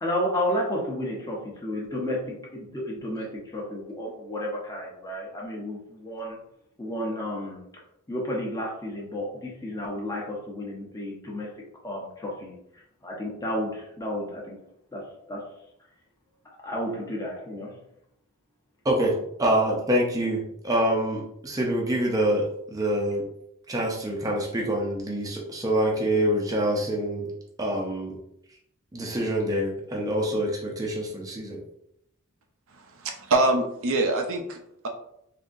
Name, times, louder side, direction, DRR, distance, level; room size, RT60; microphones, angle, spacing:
voice 1, 0.0-6.4 6.8-7.6 8.1-11.5 11.8-12.5 13.0-14.6 14.9-15.0 15.3-15.4 16.6-17.7, left 1 dB, 15° left, -3 dB, 0.8 m, -32 dB
voice 2, 18.8-23.3 23.7-27.3 27.6-28.2 28.9-31.6, right 1 dB, 15° right, -2 dB, 0.5 m, -26 dB
voice 3, 32.8-34.9, right 2 dB, 65° right, 4 dB, 0.5 m, -25 dB
3.7 x 2.7 x 2.5 m, 0.76 s
head